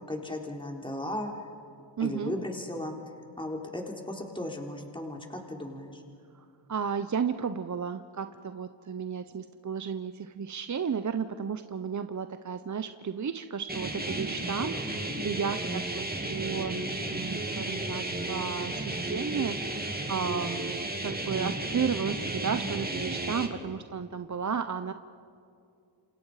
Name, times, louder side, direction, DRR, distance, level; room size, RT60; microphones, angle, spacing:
voice 1, 0.1-1.3 2.0-3.0 3.4-6.0, left 1 dB, 10° left, 1 dB, 3.6 m, -36 dB
voice 2, 2.0-2.3 6.3-24.9, right 6 dB, 40° right, 10 dB, 0.9 m, -33 dB
sound 1, 13.7-23.5, right 2 dB, 20° right, 3.0 m, -33 dB
28.5 x 27.5 x 5.0 m, 2.4 s
cardioid pair, 65°, 46 cm